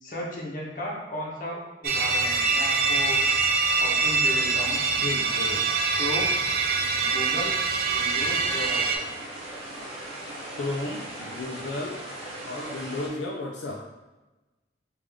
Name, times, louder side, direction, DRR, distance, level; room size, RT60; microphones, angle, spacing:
voice 1, 0.0-3.2 3.8-5.1 6.0-6.3 6.9-7.5 7.9-8.8, left 1 dB, 50° left, -4 dB, 0.9 m, -35 dB
sound 1, 1.8-9.0, right 4 dB, 55° right, 0.4 m, -24 dB
voice 2, 5.0-5.7 10.6-12.0 12.4-13.8, left 2 dB, 85° left, -1 dB, 0.4 m, -33 dB
sound 2, 7.5-13.1, right 1 dB, 35° right, 0.9 m, -39 dB
3.5 x 2.5 x 3.4 m, 1.1 s
head